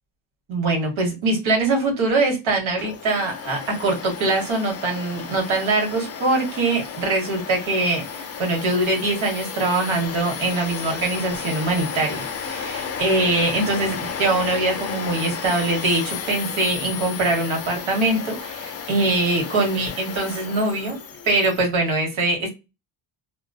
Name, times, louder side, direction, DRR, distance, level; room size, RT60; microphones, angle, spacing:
voice 1, 0.5-21.0 21.2-22.5, right 2 dB, 75° right, 1 dB, 1.4 m, -23 dB
Domestic sounds home sounds, 2.8-21.6, left 6 dB, 35° left, 0.4 m, -33 dB
2.9 x 2.0 x 2.5 m, 0.26 s
cardioid pair, 110°, 48 cm